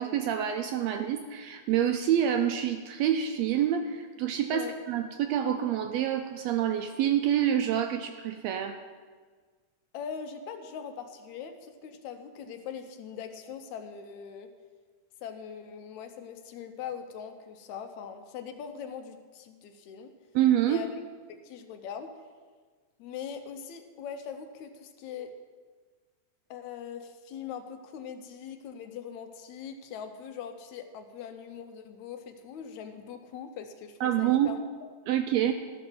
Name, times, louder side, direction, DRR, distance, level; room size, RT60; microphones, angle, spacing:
voice 1, 0.0-8.8 20.3-20.8 34.0-34.6 35.1-35.5, right 10 dB, 80° right, 6 dB, 1.6 m, -27 dB
voice 2, 9.9-14.5 15.2-20.1 20.7-21.0 21.3-22.1 23.0-25.3 26.5-34.6, left 7 dB, 80° left, 7 dB, 2.0 m, -41 dB
13.0 x 5.5 x 6.1 m, 1.5 s
omnidirectional pair, 3.4 m